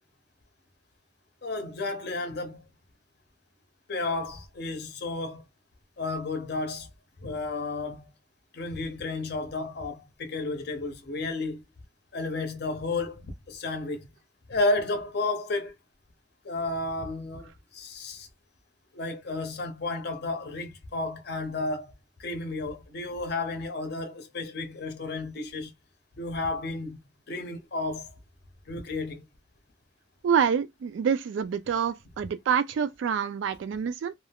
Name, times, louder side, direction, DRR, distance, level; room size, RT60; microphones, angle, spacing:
voice 1, 1.4-2.7 3.9-5.4 6.0-6.9 7.2-8.1 8.5-11.6 12.1-14.1 14.5-15.7 16.4-18.3 18.9-21.9 22.2-25.7 26.2-27.0 27.3-28.1 28.7-29.2, left 2 dB, 55° left, 0.6 m, -32 dB
voice 2, 30.2-34.1, right 7 dB, 75° right, 0.3 m, -27 dB
2.3 x 2.3 x 3.3 m
head